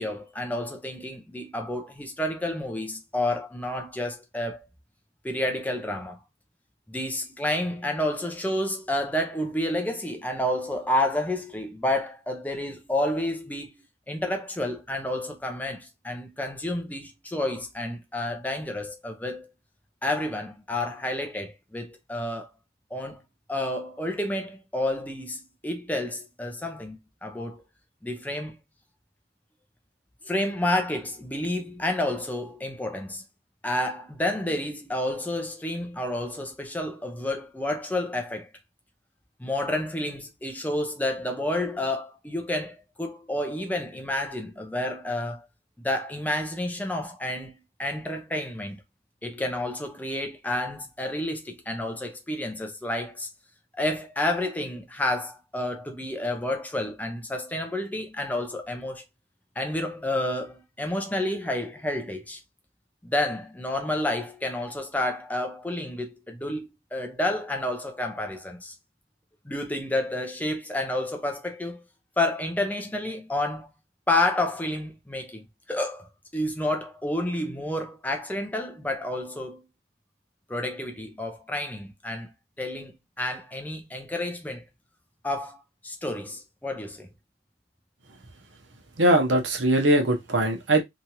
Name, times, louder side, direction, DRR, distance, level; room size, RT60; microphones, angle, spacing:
voice 1, 0.0-4.7 5.2-6.2 6.9-13.7 14.1-19.5 20.0-22.5 22.9-23.2 23.5-27.6 28.0-28.5 30.2-33.2 33.6-38.5 39.4-45.5 45.8-48.8 49.2-53.3 53.8-59.0 59.6-62.4 63.0-68.7 69.4-71.8 72.2-73.7 74.1-79.6 80.5-82.3 82.6-84.6 85.2-87.1, left 1 dB, 10° left, 0.4 m, -30 dB
voice 2, 89.0-90.8, right 1 dB, 80° right, 0.8 m, -21 dB
2.9 x 2.3 x 2.8 m
head